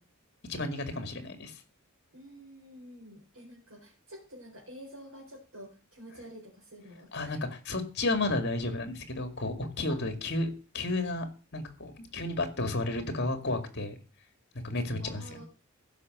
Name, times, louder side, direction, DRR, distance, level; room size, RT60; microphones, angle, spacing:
voice 1, 0.5-1.6 7.1-11.3 11.5-14.0 14.6-15.4, left 2 dB, 50° left, 8 dB, 2.2 m, -32 dB
voice 2, 2.1-7.4 9.9-10.0 15.0-15.5, equal, 85° right, -3 dB, 4.1 m, -49 dB
15.0 x 5.8 x 6.4 m, 0.35 s
head